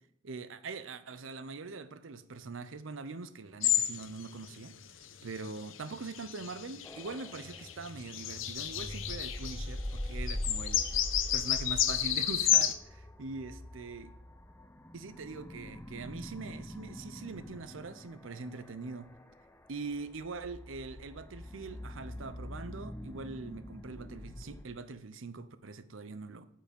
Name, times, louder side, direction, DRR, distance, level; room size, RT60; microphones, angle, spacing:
voice 1, 0.2-4.7 5.2-10.8 11.3-14.1 14.9-19.1 19.7-26.5, right 4 dB, 80° right, 0.7 m, -42 dB
sound 1, 3.6-4.1 4.4-4.5 5.3-9.6 10.0-10.1 10.3-12.7, left 11 dB, 75° left, 0.8 m, -31 dB
sound 2, 6.8-24.6, left 1 dB, 10° left, 0.5 m, -44 dB
9.0 x 7.6 x 5.3 m
head